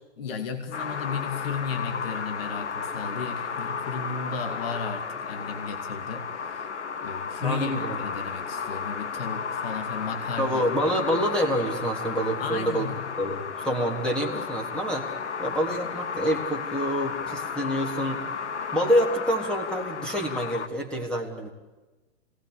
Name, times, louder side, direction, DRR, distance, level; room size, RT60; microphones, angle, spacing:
voice 1, 0.2-6.8 7.0-10.6 10.9-11.1 12.4-13.1, left 5 dB, 55° left, 7 dB, 2.6 m, -34 dB
sound 1, 0.7-20.7, left 6 dB, 70° left, 1.7 m, -33 dB
voice 2, 7.4-8.0 10.4-12.9 13.2-15.1 15.4-18.2 18.7-21.5, equal, 5° left, 1 dB, 3.5 m, -27 dB
27.0 x 19.5 x 8.5 m, 1.2 s
hypercardioid pair, 130°, 35 cm